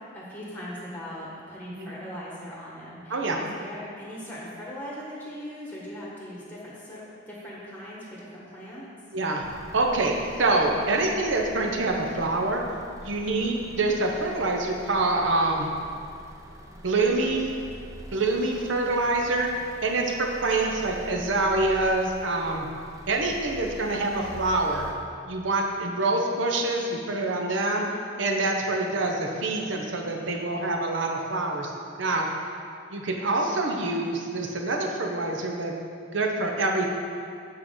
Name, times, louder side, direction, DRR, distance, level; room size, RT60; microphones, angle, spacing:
voice 1, 0.1-8.8 13.2-13.5, equal, 10° left, -6 dB, 1.4 m, -40 dB
voice 2, 9.1-9.4 9.7-10.1 10.4-12.6 13.0-15.7 16.8-17.5 18.1-19.5 19.8-22.7 23.1-24.9 25.3-27.9 28.2-31.7 32.0-32.3 32.9-35.7 36.1-36.9, right 2 dB, 70° right, 1 dB, 0.8 m, -26 dB
sound 1, 9.4-24.9, equal, 15° right, 0.5 m, -45 dB
8.3 x 4.7 x 3.8 m, 2.4 s
head